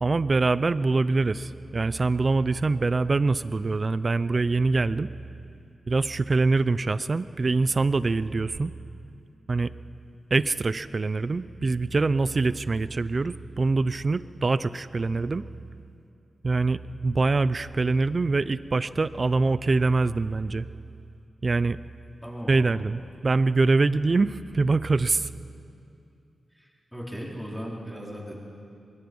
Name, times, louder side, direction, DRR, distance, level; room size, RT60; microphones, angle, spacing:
voice 1, 0.0-5.1 5.9-8.7 9.5-9.7 10.3-15.5 16.4-20.7 21.4-21.8 22.5-25.3, right 3 dB, 40° right, 16 dB, 0.5 m, -24 dB
voice 2, 22.2-22.8 26.5-28.4, equal, ahead, -3 dB, 4.1 m, -37 dB
23.5 x 22.5 x 5.4 m, 2.6 s
wide cardioid pair, 105°, 0 cm